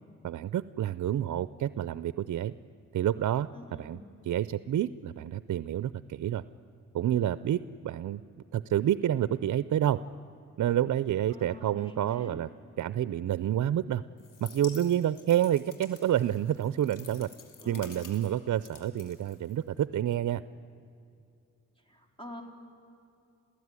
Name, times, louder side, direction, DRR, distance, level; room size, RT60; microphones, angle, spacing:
voice 1, 0.2-2.5 2.9-6.4 6.9-8.2 8.5-10.0 10.6-12.5 12.8-14.0 14.4-17.3 17.7-20.4, right 11 dB, 65° right, 16 dB, 0.5 m, -29 dB
voice 2, 3.5-4.1 11.3-12.4 17.6-18.2 21.9-22.4, left 1 dB, 15° left, 3 dB, 4.3 m, -47 dB
sound 1, 14.2-19.9, left 6 dB, 80° left, 2.7 m, -51 dB
27.5 x 16.0 x 9.6 m, 2.6 s
cardioid pair, 75°, 31 cm